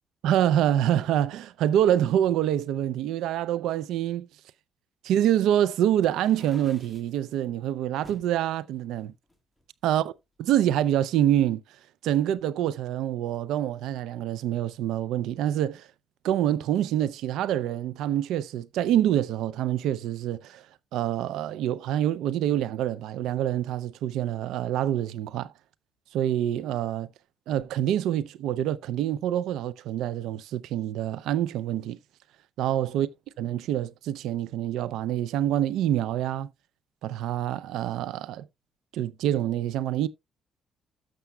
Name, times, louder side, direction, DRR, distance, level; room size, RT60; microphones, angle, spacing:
voice 1, 0.2-4.3 5.0-9.1 9.8-10.0 10.4-11.6 12.0-15.9 16.2-20.7 20.9-25.5 26.1-27.1 27.5-32.0 32.6-33.1 33.4-36.5 37.0-38.5 38.9-40.1, right 11 dB, 90° right, 0.4 m, -26 dB
sound 1, 6.1-7.2 8.0-8.3 8.9-10.0, equal, 5° left, 1.7 m, -52 dB
12.5 x 6.8 x 2.2 m
cardioid pair, 90°, 0 cm